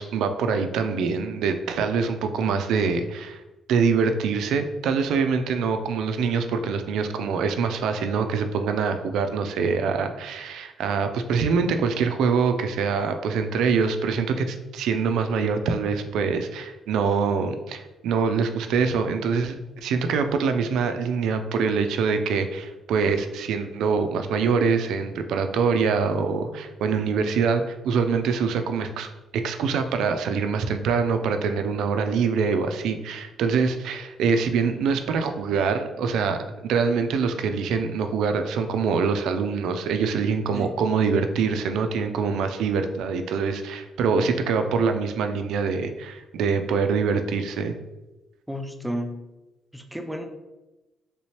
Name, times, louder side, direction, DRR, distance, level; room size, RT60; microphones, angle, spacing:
voice 1, 0.0-3.4 3.7-47.7, right 5 dB, 85° right, 7 dB, 0.3 m, -24 dB
voice 2, 48.5-49.2 49.7-50.3, equal, 5° right, 5 dB, 0.4 m, -32 dB
3.3 x 2.8 x 3.1 m, 1.0 s
cardioid pair, 90°, 0 cm